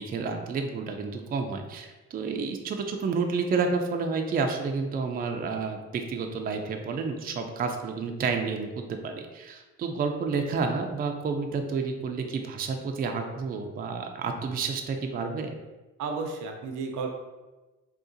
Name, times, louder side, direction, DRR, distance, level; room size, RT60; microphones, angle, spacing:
voice 1, 0.0-15.6, right 4 dB, 30° right, 4 dB, 0.4 m, -30 dB
voice 2, 16.0-17.1, right 4 dB, 75° right, 3 dB, 0.6 m, -32 dB
3.7 x 2.4 x 2.6 m, 1.2 s
cardioid pair, 90°, 30 cm